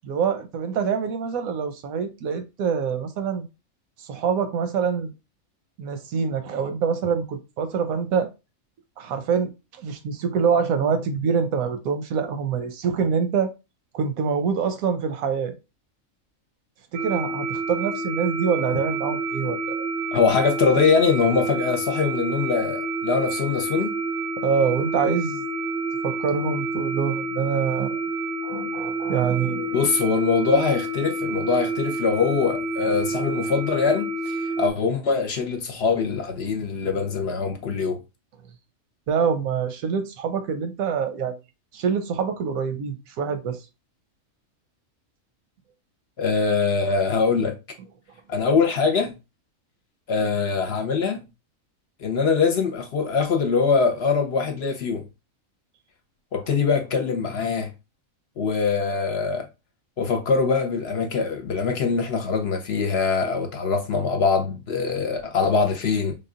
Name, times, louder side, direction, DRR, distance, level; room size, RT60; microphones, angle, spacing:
voice 1, 0.0-3.5 4.0-5.1 5.8-8.3 9.0-13.5 13.9-15.5 16.9-19.9 24.4-25.5 26.0-28.0 28.4-29.8 39.1-41.4 41.7-43.6, right 6 dB, 90° right, 1.1 m, -25 dB
sound 1, 16.9-34.7, right 2 dB, 55° right, 0.6 m, -29 dB
voice 2, 20.1-24.0 29.7-38.0 46.2-47.5 48.3-49.1 50.1-51.2 52.0-55.0 56.3-57.7 58.4-59.5 60.0-66.2, left 5 dB, 60° left, 0.8 m, -23 dB
3.6 x 2.2 x 3.6 m
omnidirectional pair, 1.4 m